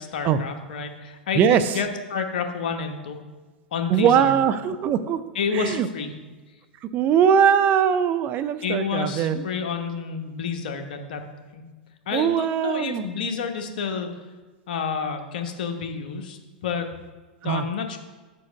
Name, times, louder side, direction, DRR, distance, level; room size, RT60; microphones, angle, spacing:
voice 1, 0.0-3.2 3.7-4.3 5.3-6.1 8.6-11.2 11.5-11.6 12.1-14.1 14.7-16.9 17.4-18.0, left 6 dB, 70° left, 5 dB, 1.0 m, -29 dB
voice 2, 1.4-1.8 3.9-5.2 5.5-5.9 6.9-9.4 12.1-13.0 17.4-17.6, right 8 dB, 40° right, 12 dB, 0.5 m, -21 dB
5.6 x 4.6 x 6.3 m, 1.3 s
hypercardioid pair, 100°, 5 cm